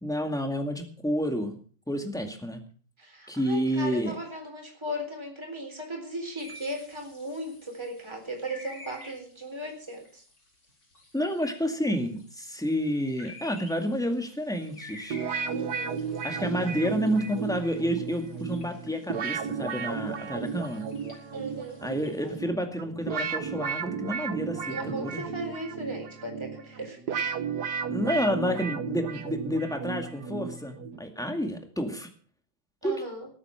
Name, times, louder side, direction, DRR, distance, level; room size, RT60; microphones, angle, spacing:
voice 1, 0.0-1.6 1.9-2.6 3.3-4.2 11.1-15.2 16.2-20.9 21.8-25.2 27.9-32.1 32.8-33.0, equal, ahead, 5 dB, 1.9 m, -29 dB
voice 2, 3.0-10.2 15.5-16.0 21.3-21.8 24.7-27.2 32.8-33.3, equal, 15° right, 3 dB, 3.9 m, -37 dB
sound 1, 6.4-22.4, left 1 dB, 70° left, 5.3 m, -51 dB
sound 2, 15.1-31.0, right 6 dB, 60° right, 1.6 m, -34 dB
19.5 x 8.8 x 5.9 m, 0.43 s
omnidirectional pair, 2.0 m